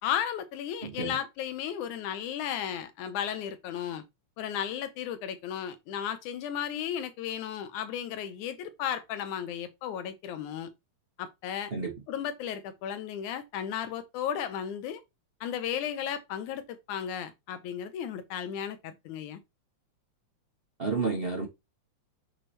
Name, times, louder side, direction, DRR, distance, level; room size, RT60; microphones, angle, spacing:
voice 1, 0.0-4.0 4.4-10.7 11.2-11.7 12.1-15.0 15.4-19.4, left 9 dB, 85° left, 2.4 m, -34 dB
voice 2, 0.8-1.2 11.7-11.9 20.8-21.5, right 4 dB, 80° right, 0.5 m, -30 dB
8.2 x 3.3 x 4.3 m
omnidirectional pair, 3.4 m